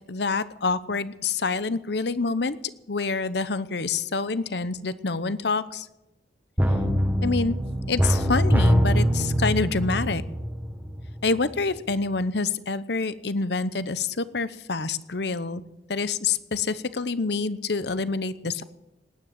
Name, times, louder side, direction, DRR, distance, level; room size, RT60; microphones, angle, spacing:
voice 1, 0.1-2.6 2.9-5.9 7.2-7.6 7.9-10.2 11.2-15.6 15.9-18.6, left 4 dB, 65° left, 15 dB, 0.9 m, -27 dB
sound 1, 6.6-11.3 11.6-11.7, equal, 10° right, 1.6 m, -23 dB
19.0 x 9.8 x 7.6 m, 0.95 s
head